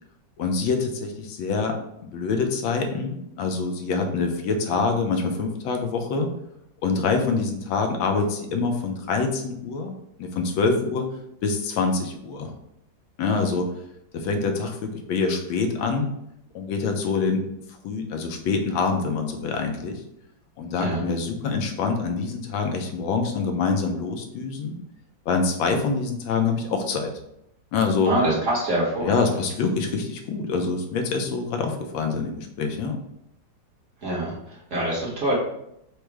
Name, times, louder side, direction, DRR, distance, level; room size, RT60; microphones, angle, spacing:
voice 1, 0.4-1.8 2.0-6.3 6.8-11.1 11.4-12.5 13.2-13.7 14.1-16.1 16.5-17.4 17.8-20.0 20.6-24.8 25.3-27.1 27.7-28.1 29.0-33.0, left 4 dB, 85° left, 4 dB, 1.5 m, -25 dB
voice 2, 28.0-29.2 34.0-35.3, right 1 dB, 45° right, -4 dB, 1.2 m, -25 dB
4.9 x 2.1 x 4.5 m, 0.79 s
omnidirectional pair, 2.1 m